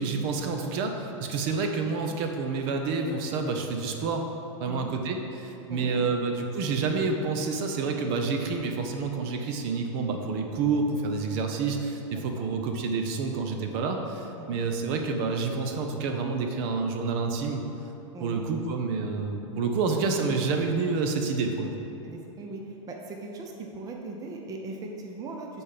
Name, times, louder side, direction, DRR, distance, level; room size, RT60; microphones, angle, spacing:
voice 1, 0.0-4.3 4.6-17.6 18.2-21.7, right 4 dB, 50° right, 4 dB, 0.8 m, -28 dB
voice 2, 5.7-6.1 12.1-12.5 14.4-14.6 18.1-18.4 22.0-25.6, right 2 dB, 20° right, 1 dB, 0.7 m, -39 dB
8.6 x 4.3 x 5.1 m, 2.9 s
supercardioid pair, 130°, 17 cm